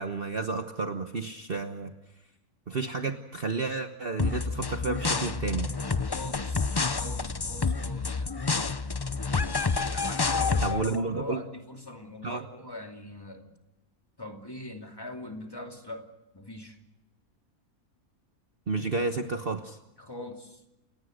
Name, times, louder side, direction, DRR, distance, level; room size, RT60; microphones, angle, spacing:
voice 1, 0.0-1.9 2.7-5.7 10.6-11.4 12.2-12.4 18.7-19.8, right 4 dB, 40° right, 6 dB, 1.2 m, -31 dB
sound 1, 4.2-11.0, left 4 dB, 30° left, 0.4 m, -29 dB
voice 2, 6.1-6.7 6.9-8.4 9.9-13.5 14.2-16.8 20.0-20.6, left 1 dB, 15° left, 3 dB, 2.6 m, -41 dB
29.5 x 18.0 x 6.5 m, 1.0 s
omnidirectional pair, 1.6 m